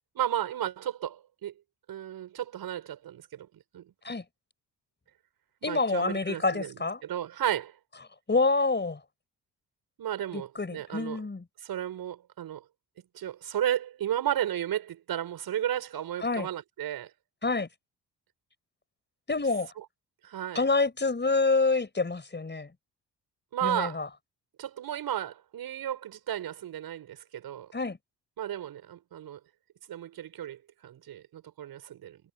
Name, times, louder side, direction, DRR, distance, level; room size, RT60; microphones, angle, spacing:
voice 1, 0.1-1.5 1.9-3.5 3.7-3.9 5.6-7.7 10.0-11.2 11.6-12.6 13.1-17.1 19.8-19.9 20.2-20.6 23.5-24.0 24.6-27.7 28.4-29.4 29.9-32.2, right 11 dB, 60° right, 6.0 m, -33 dB
voice 2, 5.6-7.0 8.3-9.0 10.3-11.4 16.2-16.5 17.4-17.7 19.3-19.7 20.6-22.7 23.6-24.1 27.7-28.0, left 3 dB, 25° left, 5.2 m, -27 dB
hypercardioid pair, 45°, 41 cm